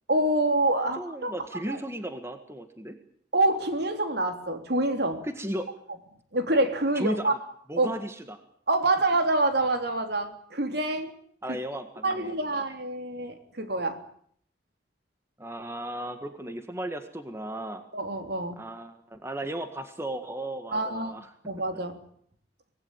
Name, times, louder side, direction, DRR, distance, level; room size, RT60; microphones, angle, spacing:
voice 1, 0.1-1.8 3.3-5.2 6.3-7.3 7.8-7.9 8.7-11.1 11.5-11.6 12.0-14.0 17.9-18.6 20.7-21.1 21.5-22.0, right 2 dB, 60° right, 7 dB, 3.4 m, -26 dB
voice 2, 1.0-3.0 5.2-5.7 7.0-7.4 7.7-8.4 11.4-12.7 15.4-17.8 18.6-21.3, right 1 dB, 15° right, 7 dB, 1.8 m, -35 dB
25.0 x 19.0 x 9.0 m, 0.64 s
head